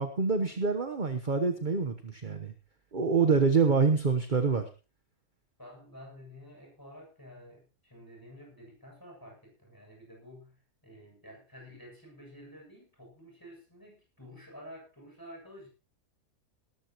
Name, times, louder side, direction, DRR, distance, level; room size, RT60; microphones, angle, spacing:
voice 1, 0.0-2.5 2.9-4.6, right 5 dB, 35° right, 7 dB, 1.2 m, -26 dB
voice 2, 5.6-15.7, equal, 10° left, 0 dB, 7.5 m, -50 dB
19.0 x 13.5 x 3.1 m, 0.32 s
omnidirectional pair, 1.7 m